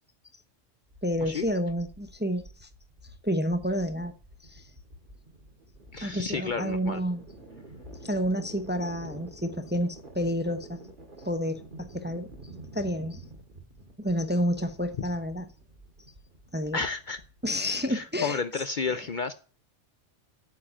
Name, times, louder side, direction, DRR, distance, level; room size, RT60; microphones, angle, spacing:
sound 1, 0.9-17.9, right 1 dB, 40° right, 2.7 m, -48 dB
voice 1, 1.0-2.7 3.2-4.1 4.4-4.6 6.0-7.2 8.0-10.8 11.2-12.3 12.7-13.2 14.0-15.5 16.5-16.8 17.4-19.0, equal, 10° right, 0.7 m, -30 dB
voice 2, 5.9-7.0 16.7-17.2 17.9-19.3, left 4 dB, 50° left, 0.7 m, -31 dB
8.3 x 7.6 x 8.7 m
omnidirectional pair, 1.3 m